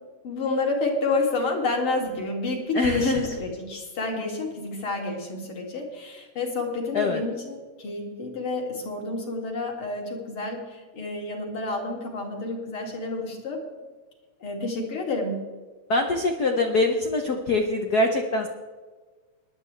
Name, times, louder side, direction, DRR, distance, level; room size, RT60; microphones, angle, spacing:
voice 1, 0.2-13.6 14.4-15.4, left 3 dB, 50° left, 0 dB, 3.2 m, -29 dB
voice 2, 2.7-3.3 6.9-7.2 15.9-18.5, left 2 dB, 85° left, 4 dB, 0.8 m, -23 dB
19.5 x 11.5 x 3.3 m, 1.3 s
omnidirectional pair, 3.3 m